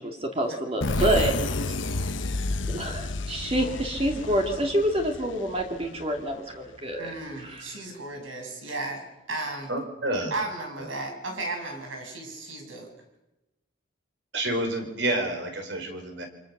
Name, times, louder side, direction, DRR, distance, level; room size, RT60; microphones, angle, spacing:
voice 1, 0.0-1.3 2.7-7.8, right 1 dB, 30° right, 3 dB, 2.4 m, -27 dB
sound 1, 0.8-6.3, left 2 dB, 75° left, 1.1 m, -30 dB
voice 2, 0.8-2.2 3.6-3.8 7.0-9.7 10.3-12.9, right 2 dB, 90° right, 3 dB, 7.0 m, -36 dB
voice 3, 9.7-10.3 14.3-16.3, right 1 dB, 65° right, 5 dB, 4.8 m, -29 dB
28.0 x 25.5 x 6.7 m, 0.94 s
head